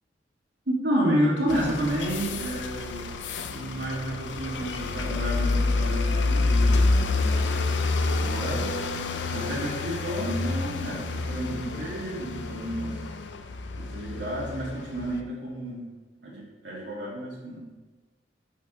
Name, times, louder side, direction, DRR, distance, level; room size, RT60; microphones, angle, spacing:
voice 1, 0.7-3.0 3.5-8.7 9.3-13.0 13.8-15.8 16.2-17.6, equal, 85° right, -5 dB, 2.4 m, -30 dB
sound 1, 1.5-15.2, left 3 dB, 85° left, 0.5 m, -28 dB
6.0 x 4.7 x 6.2 m, 1.2 s
head